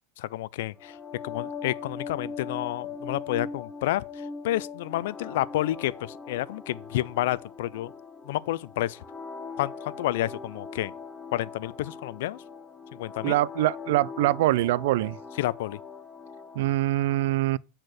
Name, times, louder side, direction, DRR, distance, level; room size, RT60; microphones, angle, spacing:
voice 1, 0.2-1.0 1.2-4.0 4.4-7.9 8.3-9.0 9.6-10.9 11.3-12.4 12.9-13.4 15.4-15.8, left 15 dB, 70° left, 0.4 m, -30 dB
sound 1, 0.8-16.7, left 4 dB, 10° left, 0.7 m, -41 dB
voice 2, 13.2-15.2 16.6-17.6, right 16 dB, 70° right, 0.3 m, -24 dB
8.5 x 4.4 x 6.3 m
supercardioid pair, 150°, 0 cm